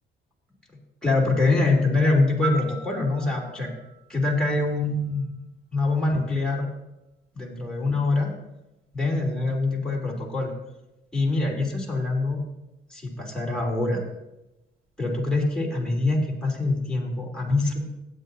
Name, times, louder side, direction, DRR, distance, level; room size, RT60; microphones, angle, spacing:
voice 1, 1.0-3.7 4.1-5.3 5.7-6.7 7.3-8.3 8.9-10.5 11.1-12.4 12.9-14.0 15.0-17.9, left 2 dB, 5° left, -3 dB, 3.3 m, -24 dB
Piano, 2.4-5.3 13.5-13.7, right 6 dB, 85° right, 3.4 m, -38 dB
16.0 x 9.0 x 2.8 m, 0.93 s
cardioid pair, 90°, 20 cm